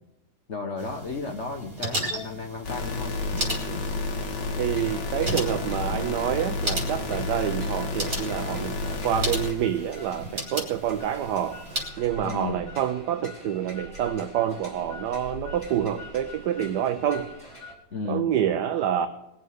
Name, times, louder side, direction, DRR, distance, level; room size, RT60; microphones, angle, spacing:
voice 1, 0.5-3.1 12.2-12.7 17.9-18.3, left 3 dB, 45° left, 4 dB, 1.1 m, -33 dB
sound 1, 0.8-11.9, right 1 dB, 45° right, 4.2 m, -35 dB
sound 2, 2.6-9.5, left 3 dB, 65° left, 2.2 m, -30 dB
voice 2, 4.6-11.6 12.0-17.3 18.0-19.1, right 10 dB, 65° right, 9 dB, 1.2 m, -27 dB
sound 3, 4.7-17.7, left 1 dB, 15° left, 3.5 m, -44 dB
21.0 x 7.3 x 6.4 m, 0.92 s
omnidirectional pair, 2.0 m